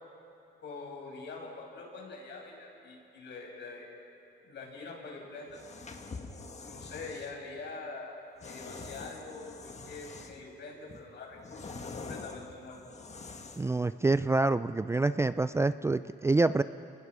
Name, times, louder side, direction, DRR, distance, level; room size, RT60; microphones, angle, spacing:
voice 1, 0.6-3.9 4.4-5.6 6.6-12.8, left 3 dB, 60° left, -1 dB, 6.3 m, -44 dB
sound 1, 5.5-7.3 8.4-10.5 10.9-13.8, left 4 dB, 35° left, 1.7 m, -45 dB
voice 2, 13.6-16.6, right 3 dB, 15° right, 13 dB, 0.4 m, -26 dB
29.0 x 19.5 x 5.0 m, 2.7 s
cardioid pair, 90°, 20 cm